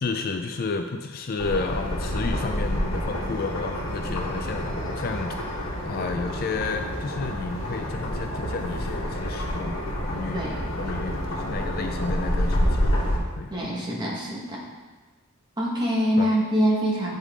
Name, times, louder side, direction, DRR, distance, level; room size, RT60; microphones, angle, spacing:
voice 1, 0.0-9.8 10.1-10.4 10.7-12.8 13.3-13.5 16.2-16.3, left 4 dB, 45° left, 5 dB, 0.4 m, -31 dB
sound 1, 1.4-13.2, equal, 70° left, 1.3 m, -28 dB
voice 2, 13.5-14.6 15.6-17.1, equal, 20° right, -4 dB, 1.4 m, -24 dB
8.3 x 5.2 x 3.7 m, 1.3 s
head